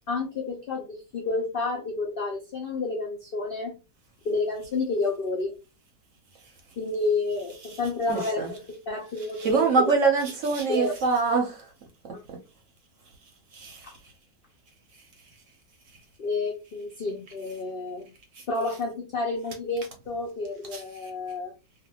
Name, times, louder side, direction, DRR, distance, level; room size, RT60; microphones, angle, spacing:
voice 1, 0.1-3.7 4.2-5.5 6.8-8.4 8.9-9.9 10.7-10.9 12.1-12.2 13.8-13.9 16.2-18.1 18.5-21.5, left 3 dB, 80° left, 0.5 m, -30 dB
voice 2, 8.1-8.5 9.4-11.6 13.5-13.9 20.7-20.8, right 4 dB, 60° right, 0.9 m, -24 dB
2.5 x 2.4 x 2.7 m
omnidirectional pair, 1.8 m